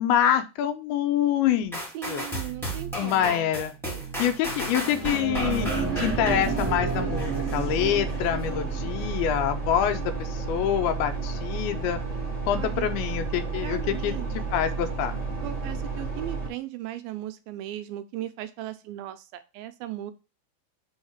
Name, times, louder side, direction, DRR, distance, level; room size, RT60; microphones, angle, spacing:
voice 1, 0.0-1.8 2.1-2.3 2.9-3.7 4.2-12.0 12.5-14.2 14.5-15.1, left 10 dB, 85° left, 9 dB, 2.7 m, -26 dB
sound 1, 1.7-7.6 8.1-8.2, right 1 dB, ahead, 0.9 m, -34 dB
voice 2, 1.9-3.5 12.5-12.9 13.6-14.3 15.4-20.1, right 13 dB, 85° right, 10 dB, 2.4 m, -37 dB
sound 2, 4.6-9.3, right 4 dB, 40° right, 2.1 m, -31 dB
sound 3, 5.4-16.5, right 4 dB, 15° right, 1.6 m, -31 dB
6.4 x 3.6 x 5.7 m, 0.30 s
omnidirectional pair, 4.3 m